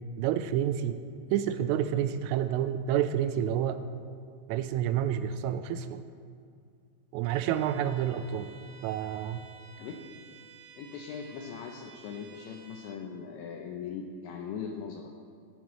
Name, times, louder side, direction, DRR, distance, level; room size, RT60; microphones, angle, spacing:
voice 1, 0.2-1.0 1.3-3.8 4.5-6.0 7.1-8.5 8.8-9.5, right 10 dB, 90° right, 10 dB, 3.2 m, -29 dB
Bowed string instrument, 7.2-13.0, right 6 dB, 70° right, 2.5 m, -53 dB
voice 2, 10.8-15.1, left 6 dB, 75° left, 1 dB, 2.9 m, -40 dB
19.5 x 14.5 x 3.2 m, 2.3 s
omnidirectional pair, 5.7 m